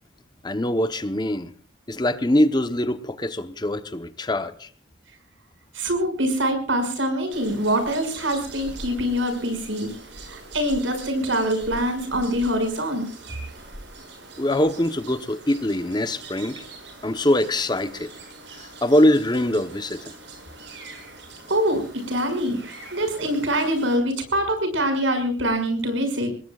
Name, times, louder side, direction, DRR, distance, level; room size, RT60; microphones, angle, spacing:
voice 1, 0.4-1.5 1.9-4.7 14.4-16.7 17.0-18.1 18.8-20.0, left 1 dB, 20° left, 0.9 m, -23 dB
voice 2, 5.7-9.9 10.3-13.1 21.5-26.3, equal, 80° right, 6.1 m, -24 dB
sound 1, 7.3-24.0, right 2 dB, 65° right, 6.8 m, -43 dB
27.5 x 20.5 x 2.4 m
head